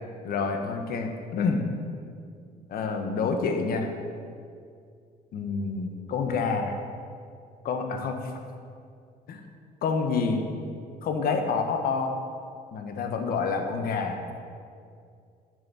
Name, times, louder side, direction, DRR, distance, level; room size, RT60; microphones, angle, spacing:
voice 1, 0.2-1.7 2.7-3.9 5.3-6.8 7.6-8.3 9.3-9.4 9.8-10.5 11.0-12.2 12.7-14.2, left 4 dB, 60° left, 4 dB, 1.2 m, -28 dB
7.0 x 6.9 x 7.0 m, 2.3 s
cardioid pair, 110°, 17 cm